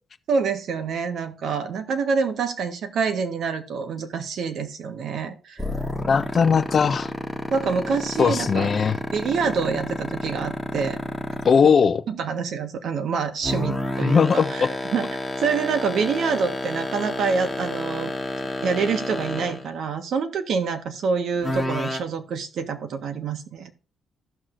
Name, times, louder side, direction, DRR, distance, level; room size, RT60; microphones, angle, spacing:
voice 1, 0.3-5.7 7.5-8.7 9.1-11.0 12.1-14.7 14.9-15.1 15.4-18.1 18.6-23.7, right 5 dB, 70° right, 1.4 m, -26 dB
sound 1, 5.6-11.7 13.4-19.7 21.4-22.0, left 1 dB, ahead, 1.4 m, -29 dB
voice 2, 6.1-7.1 8.2-9.0 11.4-12.0 14.0-14.7, left 6 dB, 45° left, 0.6 m, -19 dB
15.0 x 6.0 x 2.6 m
cardioid pair, 90°, 0 cm